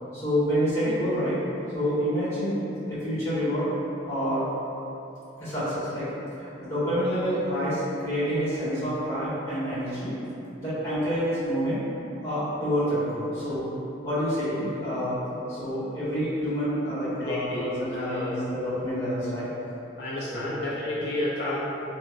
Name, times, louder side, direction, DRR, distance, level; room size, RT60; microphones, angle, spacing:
voice 1, 0.1-1.4 1.7-2.6 2.9-3.7 4.1-4.4 5.4-6.1 6.4-10.1 10.6-11.8 12.2-13.7 14.0-15.2 15.5-19.5 20.3-20.5, equal, 15° left, -15 dB, 1.4 m, -27 dB
voice 2, 17.2-17.7 17.9-18.4 20.0-21.6, left 1 dB, 65° left, -7 dB, 0.3 m, -31 dB
2.9 x 2.3 x 2.5 m, 3.0 s
head